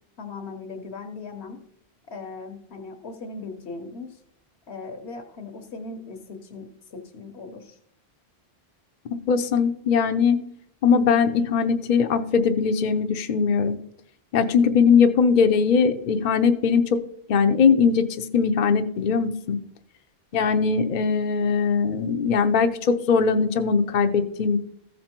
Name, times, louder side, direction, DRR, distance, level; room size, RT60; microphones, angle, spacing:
voice 1, 0.2-1.6 2.1-4.2 4.7-7.8, left 3 dB, 75° left, 3 dB, 1.3 m, -38 dB
voice 2, 9.3-10.4 10.8-13.8 14.3-17.0 17.3-19.6 20.3-24.6, left 5 dB, 50° left, 7 dB, 0.7 m, -20 dB
14.5 x 5.4 x 4.4 m, 0.71 s
omnidirectional pair, 1.1 m